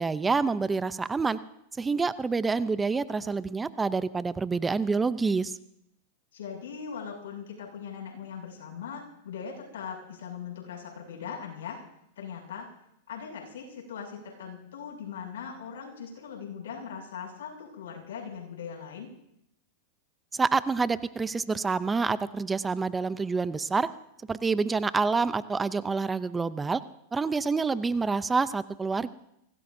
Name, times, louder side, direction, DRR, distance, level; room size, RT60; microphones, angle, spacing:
voice 1, 0.0-1.4 1.8-5.6 20.3-23.9 24.3-26.8 27.1-29.1, right 4 dB, 15° right, 15 dB, 0.5 m, -27 dB
voice 2, 6.3-11.8 12.1-12.7 13.1-19.1, left 7 dB, 80° left, -2 dB, 6.5 m, -40 dB
24.0 x 17.5 x 2.7 m, 0.79 s
hypercardioid pair, 125°, 0 cm